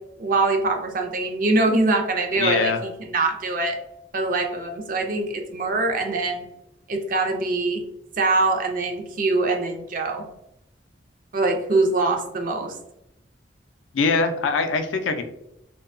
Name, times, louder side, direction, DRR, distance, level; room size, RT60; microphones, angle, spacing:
voice 1, 0.2-3.8 4.1-6.5 6.9-7.8 8.2-10.2 11.3-12.7, right 3 dB, 45° right, 3 dB, 0.4 m, -23 dB
voice 2, 2.4-2.8 13.9-15.2, left 4 dB, 90° left, 7 dB, 0.4 m, -22 dB
2.7 x 2.2 x 2.5 m, 0.83 s
head